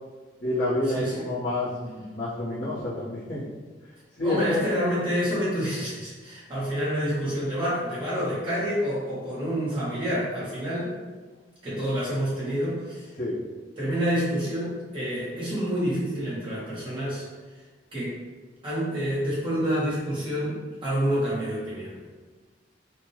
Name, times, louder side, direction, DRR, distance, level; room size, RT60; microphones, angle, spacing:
voice 1, 0.4-3.4 4.2-4.6 13.2-13.4, left 1 dB, 65° left, -13 dB, 1.5 m, -28 dB
voice 2, 4.2-10.9 11.6-13.1 13.8-17.2 17.9-18.2 18.6-22.0, equal, 30° right, -10 dB, 1.4 m, -28 dB
5.8 x 2.7 x 3.1 m, 1.3 s
head